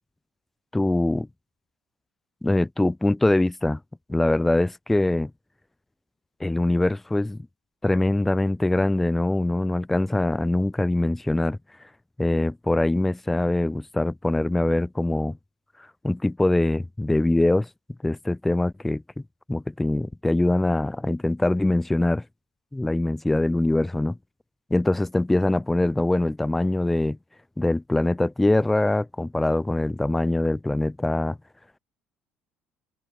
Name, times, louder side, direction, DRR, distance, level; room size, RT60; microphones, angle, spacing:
voice 1, 0.7-1.3 2.4-3.8 4.1-5.3 6.4-7.4 7.8-11.6 12.2-15.4 16.0-17.7 18.0-19.0 19.5-22.2 22.7-24.2 24.7-27.2 27.6-31.4, left 2 dB, 5° left, 0.7 m, -23 dB
open air
cardioid pair, 145°, 3 cm